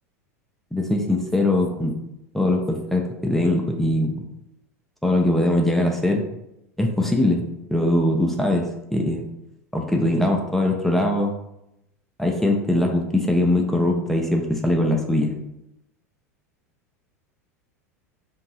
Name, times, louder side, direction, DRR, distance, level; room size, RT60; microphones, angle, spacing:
voice 1, 0.7-2.0 2.3-4.2 5.0-6.2 6.8-7.4 7.7-9.3 9.7-11.3 12.2-15.3, left 1 dB, 5° left, 1 dB, 0.4 m, -21 dB
2.7 x 2.6 x 3.0 m, 0.86 s
figure-of-eight pair, 85°, 8 cm